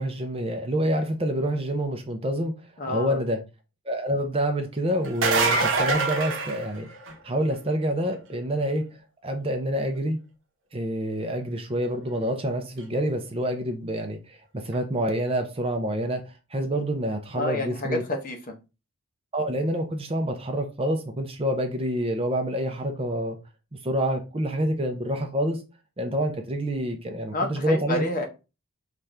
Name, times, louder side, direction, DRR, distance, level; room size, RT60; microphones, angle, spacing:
voice 1, 0.0-2.5 2.9-3.4 3.9-6.9 7.2-8.8 9.2-10.2 10.7-16.2 16.5-18.0 19.3-23.4 23.8-25.6 26.0-28.0, right 1 dB, 25° right, 0.6 m, -27 dB
voice 2, 2.8-3.2 17.3-18.5 27.3-28.3, left 1 dB, 40° left, 0.9 m, -29 dB
sound 1, 5.0-7.3 12.8-12.9 14.7-14.8, right 3 dB, 60° right, 0.9 m, -24 dB
5.6 x 2.5 x 3.3 m
head